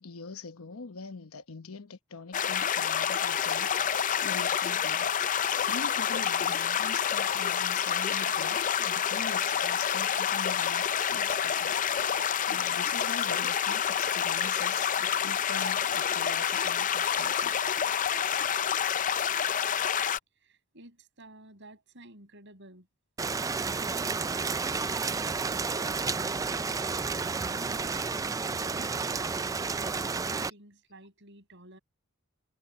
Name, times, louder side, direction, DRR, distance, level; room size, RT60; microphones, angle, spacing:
voice 1, 0.0-5.1 5.7-11.8 12.4-17.6, left 4 dB, 75° left, 1.0 m, -43 dB
sound 1, 2.3-20.2, left 8 dB, 40° left, 0.5 m, -28 dB
voice 2, 20.4-22.9 26.9-28.0 28.4-31.8, right 1 dB, 55° right, 6.4 m, -52 dB
Rain, 23.2-30.5, right 4 dB, 15° right, 0.3 m, -31 dB
head